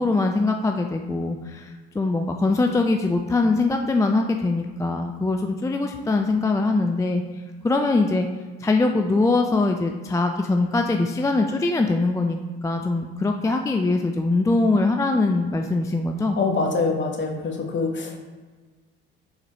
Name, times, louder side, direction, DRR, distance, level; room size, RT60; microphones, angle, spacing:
voice 1, 0.0-7.2 7.6-8.3 8.6-16.4, left 3 dB, 10° left, 4 dB, 0.3 m, -22 dB
voice 2, 16.4-18.2, left 3 dB, 40° left, 2 dB, 1.1 m, -25 dB
4.5 x 4.0 x 2.9 m, 1.4 s
hypercardioid pair, 65°, 30 cm